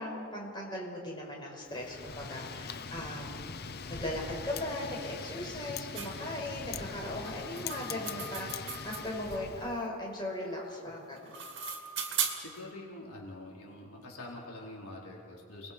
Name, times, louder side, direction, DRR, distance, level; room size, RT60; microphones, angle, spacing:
voice 1, 0.0-3.4 3.9-11.3, left 1 dB, 20° left, -2 dB, 5.1 m, -38 dB
Wind, 1.7-9.8, left 5 dB, 45° left, 0.7 m, -42 dB
sound 1, 5.9-6.1 7.2-9.3 11.0-12.6, right 7 dB, 55° right, 2.3 m, -37 dB
voice 2, 12.4-15.7, left 2 dB, 85° left, -3 dB, 4.3 m, -45 dB
30.0 x 21.5 x 5.3 m, 2.5 s
head